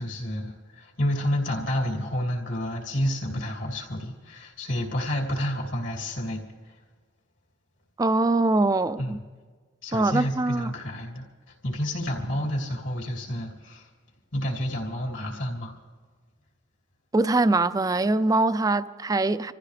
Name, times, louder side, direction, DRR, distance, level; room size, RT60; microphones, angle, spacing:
voice 1, 0.0-6.4 9.0-9.2 9.8-11.2 11.6-13.9 14.3-15.7, equal, 75° left, 2.8 m, -29 dB
voice 2, 8.0-9.2 9.9-10.7 17.1-19.5, right 2 dB, 20° right, 0.4 m, -23 dB
26.5 x 15.0 x 3.3 m
head